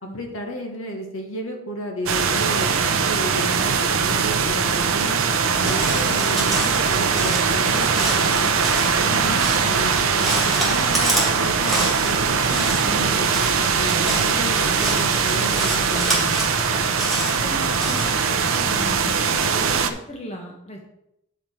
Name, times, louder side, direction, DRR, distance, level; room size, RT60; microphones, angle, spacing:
voice 1, 0.0-5.2 5.6-8.6 9.0-16.4, equal, 65° left, 2 dB, 1.6 m, -33 dB
sound 1, 2.1-19.9, right 6 dB, 70° right, 0.6 m, -21 dB
Crow, 5.5-18.5, right 1 dB, ahead, 2.3 m, -29 dB
voice 2, 17.2-20.8, equal, 30° left, 0 dB, 1.0 m, -36 dB
8.6 x 5.3 x 4.5 m, 0.80 s
head